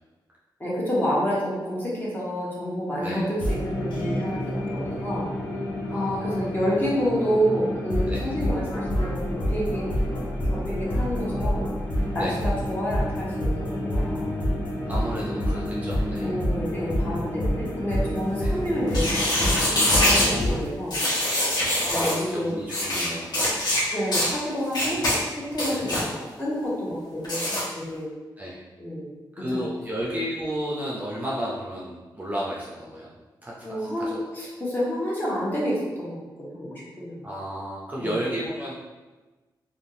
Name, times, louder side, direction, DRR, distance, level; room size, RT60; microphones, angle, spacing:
voice 1, 0.6-5.3 5.9-9.9 10.5-11.7 12.1-14.3 16.2-21.0 21.8-22.6 22.9-23.2 23.9-25.0 25.4-26.0 26.4-28.1 28.8-29.1 29.4-29.6 33.6-37.2 38.0-38.2, equal, 25° left, -6 dB, 1.0 m, -29 dB
sound 1, 3.4-20.6, equal, 85° left, 0.8 m, -28 dB
voice 2, 5.9-6.4 8.1-8.3 12.2-12.4 14.9-16.3 18.4-18.5 21.8-23.3 25.7-25.9 28.4-28.6 29.4-33.1 33.4-34.1 37.2-38.7, equal, 20° right, -6 dB, 0.5 m, -32 dB
sound 2, 18.9-20.3 20.9-22.2 22.7-23.1 23.3-23.8 24.1-24.3 24.7-25.2 25.5-26.0 27.2-27.6, left 1 dB, 60° left, 1.1 m, -23 dB
3.4 x 2.4 x 2.7 m, 1.2 s
wide cardioid pair, 110°, 8 cm